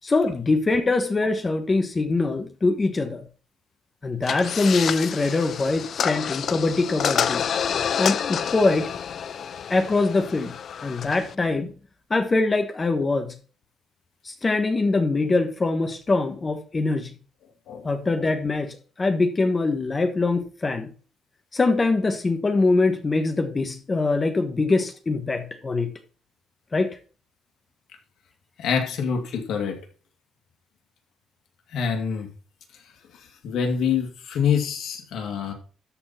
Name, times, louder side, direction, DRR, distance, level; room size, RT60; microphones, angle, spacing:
voice 1, 0.0-3.2 4.0-7.5 8.0-8.9 9.7-10.5 10.8-11.7 12.1-13.4 14.2-17.1 17.8-20.9 21.5-25.9 26.7-27.0, left 3 dB, 30° left, 1.3 m, -23 dB
sound 1, 4.2-11.3, left 7 dB, 55° left, 0.6 m, -28 dB
voice 2, 28.6-29.8 31.7-32.3 33.4-35.5, left 7 dB, 75° left, 2.3 m, -25 dB
13.0 x 4.4 x 5.7 m
cardioid pair, 90°, 0 cm